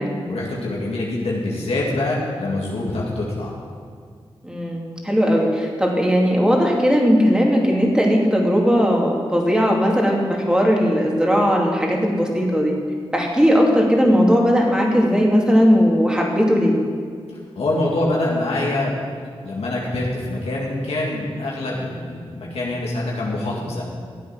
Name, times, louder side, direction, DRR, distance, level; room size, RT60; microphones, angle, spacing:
voice 1, 0.3-3.5 17.6-18.9 19.4-23.8, left 2 dB, 80° left, -4 dB, 2.2 m, -25 dB
voice 2, 4.4-12.8 13.1-16.8, equal, 10° right, -1 dB, 2.8 m, -18 dB
14.0 x 8.3 x 6.1 m, 2.1 s
cardioid pair, 55°, 10 cm